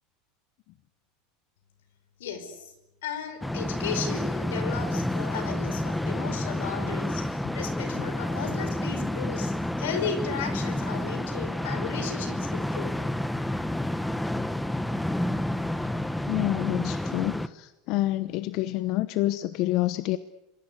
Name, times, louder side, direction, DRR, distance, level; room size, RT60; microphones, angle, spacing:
voice 1, 2.2-2.7 3.0-9.5 9.8-12.9, left 6 dB, 85° left, 10 dB, 5.2 m, -35 dB
sound 1, 3.4-17.5, left 1 dB, 5° left, 1.1 m, -29 dB
voice 2, 16.3-20.2, left 16 dB, 55° left, 14 dB, 0.9 m, -28 dB
27.0 x 22.0 x 8.2 m, 0.95 s
supercardioid pair, 110°, 0 cm